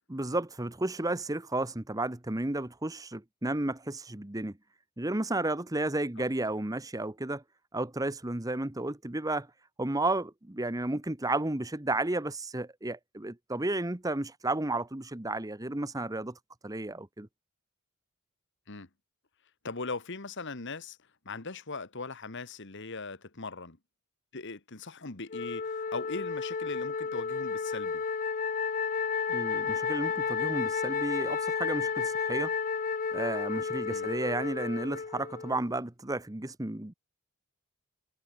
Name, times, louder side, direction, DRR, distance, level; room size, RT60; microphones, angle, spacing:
voice 1, 0.1-4.6 5.0-7.4 7.7-9.5 9.8-17.3 29.3-32.5 33.1-36.9, right 2 dB, 15° right, 1.0 m, -32 dB
voice 2, 19.6-21.0 21.3-23.8 24.3-28.0 33.9-34.1, left 3 dB, 55° left, 1.8 m, -39 dB
Wind instrument woodwind instrument, 25.3-35.7, left 5 dB, 40° left, 0.5 m, -32 dB
head